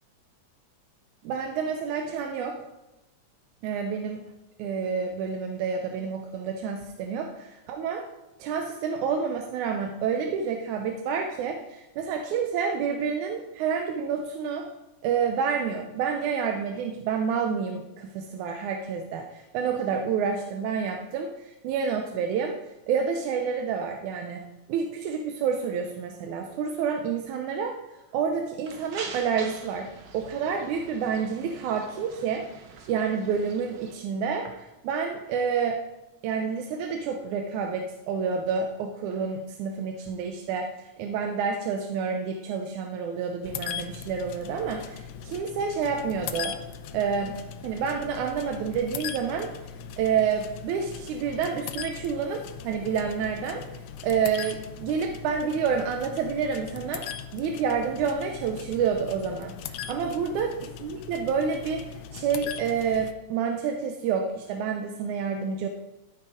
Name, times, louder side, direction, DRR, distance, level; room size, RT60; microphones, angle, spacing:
voice 1, 1.2-2.6 3.6-4.2 4.6-8.0 8.4-14.7 15.0-22.6 22.9-24.4 24.7-27.8 28.1-29.9 30.1-32.4 32.9-35.8 36.2-40.7 41.0-46.6 46.9-47.4 47.6-49.5 50.0-53.6 54.0-57.1 57.3-59.6 59.9-60.5 60.8-61.9 62.1-65.7, right 6 dB, 85° right, 3 dB, 2.3 m, -28 dB
sound 1, 28.7-34.0, right 5 dB, 65° right, 1.1 m, -44 dB
sound 2, 43.4-63.1, left 8 dB, 80° left, 1.4 m, -39 dB
12.5 x 7.3 x 5.0 m, 0.96 s
omnidirectional pair, 3.3 m